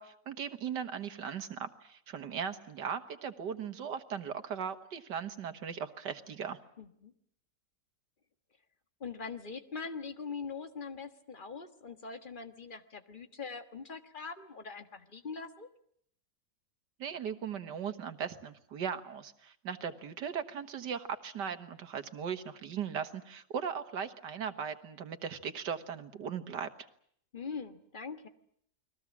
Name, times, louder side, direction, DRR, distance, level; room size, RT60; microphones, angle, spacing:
voice 1, 0.0-6.6 17.0-26.7, right 7 dB, 90° right, 8 dB, 2.1 m, -38 dB
voice 2, 6.8-7.1 9.0-15.7 27.3-28.3, left 5 dB, 30° left, 8 dB, 1.6 m, -42 dB
29.5 x 21.0 x 7.2 m, 0.66 s
omnidirectional pair, 1.8 m